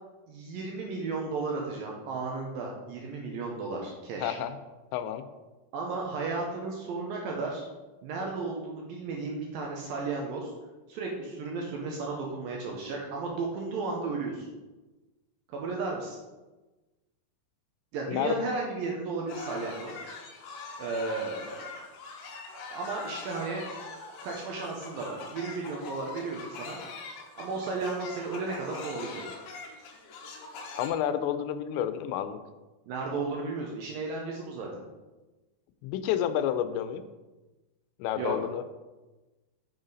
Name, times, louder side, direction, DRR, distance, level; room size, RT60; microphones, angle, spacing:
voice 1, 0.3-4.4 5.7-7.7 8.0-10.5 10.9-14.5 15.5-16.2 17.9-20.0 20.8-21.7 22.7-23.6 24.2-26.8 27.4-29.2 32.9-34.7 38.2-38.4, right 3 dB, 75° right, -1 dB, 2.2 m, -34 dB
voice 2, 4.2-4.6 4.9-5.3 18.1-18.4 30.8-32.4 35.8-37.0 38.0-38.7, left 10 dB, 85° left, 11 dB, 2.8 m, -30 dB
sound 1, 19.3-30.9, left 4 dB, 70° left, 2.5 m, -43 dB
7.9 x 7.0 x 4.0 m, 1.1 s
omnidirectional pair, 5.0 m